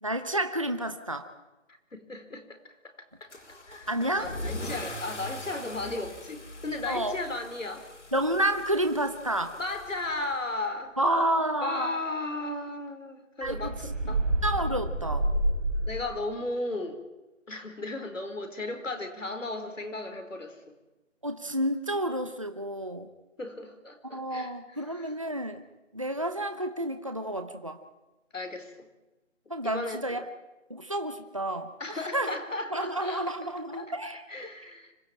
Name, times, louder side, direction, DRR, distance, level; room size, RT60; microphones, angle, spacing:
voice 1, 0.0-1.3 3.9-4.3 6.9-7.2 8.1-9.6 11.0-11.9 13.4-13.7 14.4-15.3 21.2-23.1 24.0-25.6 25.9-27.8 29.5-30.3 30.7-31.7 32.1-32.4 32.7-34.2, right 1 dB, 25° right, 8 dB, 0.8 m, -30 dB
voice 2, 1.7-2.9 3.2-3.3 3.7-3.9 4.2-7.9 9.6-11.0 11.6-14.3 15.9-17.0 17.5-20.7 23.4-25.1 28.3-28.9 29.6-30.2 31.8-34.9, left 2 dB, 80° left, 7 dB, 4.7 m, -36 dB
Car / Engine starting / Accelerating revving vroom, 3.3-10.6, left 1 dB, 65° left, 5.1 m, -42 dB
sound 1, 13.4-16.2, right 1 dB, 5° right, 3.0 m, -28 dB
25.5 x 18.0 x 9.0 m, 1.1 s
figure-of-eight pair, 180°, 38 cm